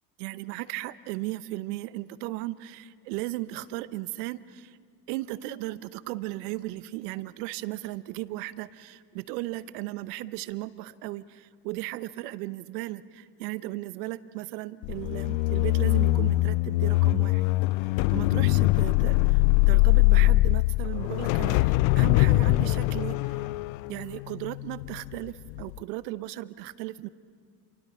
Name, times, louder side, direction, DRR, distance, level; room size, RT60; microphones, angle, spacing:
voice 1, 0.2-4.8 5.1-17.4 18.1-23.5 23.9-27.1, right 17 dB, 70° right, 16 dB, 1.0 m, -36 dB
sound 1, 14.8-25.1 25.5-25.8, left 20 dB, 65° left, 0.6 m, -23 dB
28.5 x 23.5 x 7.0 m, 2.1 s
hypercardioid pair, 75°, 49 cm